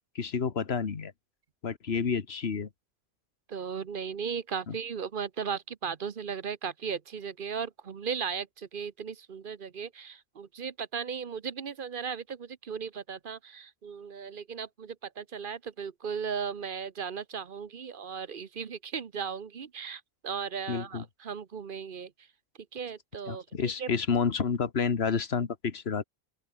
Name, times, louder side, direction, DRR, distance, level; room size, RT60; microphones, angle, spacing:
voice 1, 0.1-1.1 1.6-2.7 4.7-4.8 20.7-21.0 23.3-26.0, left 6 dB, 75° left, 1.7 m, -29 dB
voice 2, 3.5-22.1 22.7-23.9, right 6 dB, 55° right, 1.1 m, -36 dB
open air
omnidirectional pair, 1.1 m